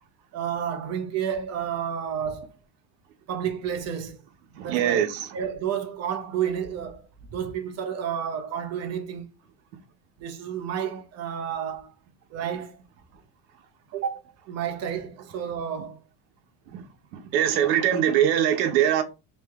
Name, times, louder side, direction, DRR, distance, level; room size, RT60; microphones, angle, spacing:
voice 1, 0.3-2.5 3.3-4.2 4.6-5.0 5.3-9.3 10.2-11.9 12.3-12.8 13.9-16.0, right 8 dB, 30° right, 0.8 m, -31 dB
voice 2, 4.5-5.3 16.7-16.8 17.1-19.0, right 10 dB, 85° right, 1.0 m, -22 dB
3.1 x 2.8 x 3.4 m
supercardioid pair, 140°, 49 cm